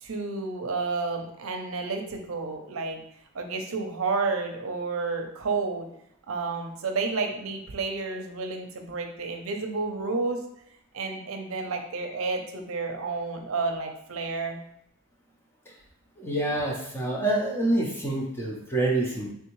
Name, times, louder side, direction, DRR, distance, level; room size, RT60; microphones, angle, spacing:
voice 1, 0.0-3.0 3.3-5.9 6.3-10.4 10.9-14.6, right 4 dB, 75° right, 4 dB, 0.6 m, -30 dB
voice 2, 16.2-19.3, right 2 dB, 10° left, -2 dB, 0.5 m, -27 dB
3.5 x 3.3 x 3.0 m, 0.75 s
head